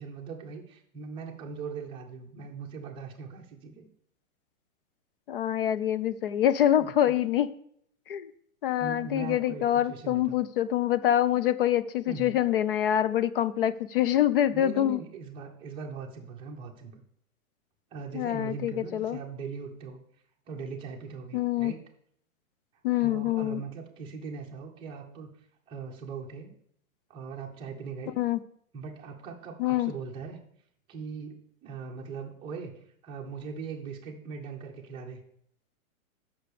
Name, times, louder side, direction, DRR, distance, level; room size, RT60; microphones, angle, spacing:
voice 1, 0.0-3.8 6.8-6.9 8.8-10.4 12.1-12.4 14.5-17.0 17.9-20.0 20.5-21.8 23.0-25.3 25.7-26.5 27.1-28.2 28.7-30.4 30.9-35.2, right 5 dB, 10° right, 0 dB, 0.8 m, -40 dB
voice 2, 5.3-7.5 8.1-8.3 8.6-15.0 18.1-19.2 21.3-21.7 22.8-23.6 28.2-28.4 29.6-29.9, left 11 dB, 40° left, 15 dB, 0.4 m, -25 dB
6.6 x 6.0 x 6.7 m, 0.68 s
hypercardioid pair, 160°, 43 cm